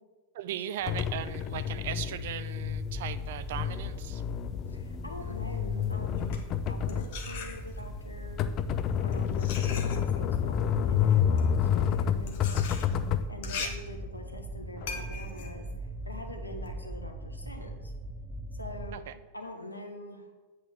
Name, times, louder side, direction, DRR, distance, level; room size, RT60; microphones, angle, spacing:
voice 1, 0.3-4.2 13.6-13.7 18.9-19.2, right 11 dB, 55° right, 13 dB, 0.5 m, -38 dB
sound 1, 0.9-13.2, left 9 dB, 35° left, 0.5 m, -29 dB
sound 2, 2.6-19.0, right 1 dB, 15° right, 0.6 m, -40 dB
voice 2, 4.7-6.4 6.7-8.4 9.0-12.7 13.3-17.9 18.5-19.0 19.3-20.4, left 1 dB, 85° left, 4 dB, 1.1 m, -44 dB
sound 3, 6.1-8.0 8.8-16.7, left 5 dB, 55° left, 1.1 m, -42 dB
8.0 x 4.7 x 7.0 m, 1.3 s
figure-of-eight pair, 90°, 0 cm